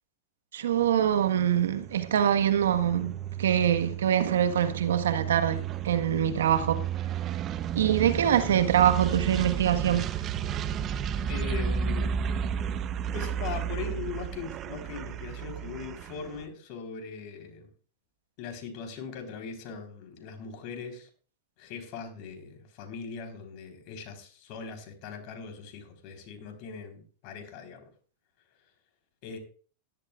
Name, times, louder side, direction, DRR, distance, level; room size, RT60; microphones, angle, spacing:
voice 1, 0.5-3.1 3.4-6.8 7.7-10.0, right 9 dB, 80° right, 1.4 m, -24 dB
sound 1, 0.8-16.4, right 8 dB, 35° right, 0.8 m, -33 dB
voice 2, 11.3-12.1 13.1-17.7 18.4-21.1 21.6-27.9 29.2-29.4, left 6 dB, 55° left, 3.9 m, -40 dB
16.5 x 12.0 x 2.4 m
hypercardioid pair, 110°, 0 cm